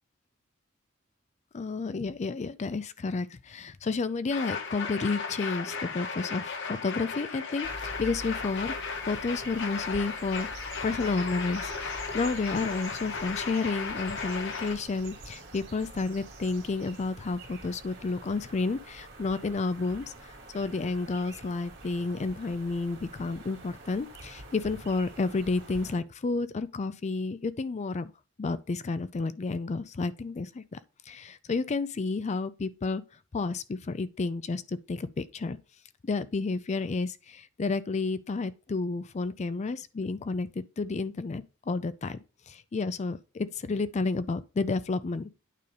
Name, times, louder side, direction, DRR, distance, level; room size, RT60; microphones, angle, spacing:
voice 1, 1.5-8.7 9.1-10.5 10.8-28.1 28.4-30.8 31.1-33.0 33.3-35.6 36.0-42.2 42.5-45.3, left 3 dB, 35° left, 0.4 m, -31 dB
sound 1, 4.3-14.7, left 5 dB, 65° left, 1.1 m, -36 dB
sound 2, 7.6-26.0, right 2 dB, 55° right, 2.2 m, -46 dB
9.2 x 3.3 x 5.2 m
head